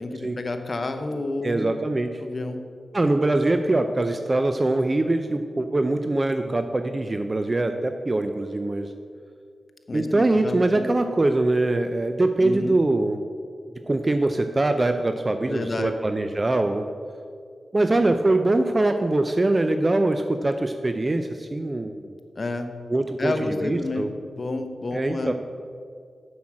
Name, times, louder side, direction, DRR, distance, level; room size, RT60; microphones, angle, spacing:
voice 1, 0.0-1.7 2.2-2.7 9.9-10.8 12.4-12.8 15.5-15.9 22.4-22.8 23.2-25.3, left 2 dB, 45° left, 7 dB, 0.9 m, -30 dB
voice 2, 1.4-2.2 2.9-8.9 9.9-13.2 13.9-16.8 17.7-22.2 22.9-24.1 24.9-25.3, right 2 dB, 35° right, 7 dB, 0.5 m, -23 dB
7.1 x 6.2 x 7.5 m, 2.2 s
cardioid pair, 60°, 0 cm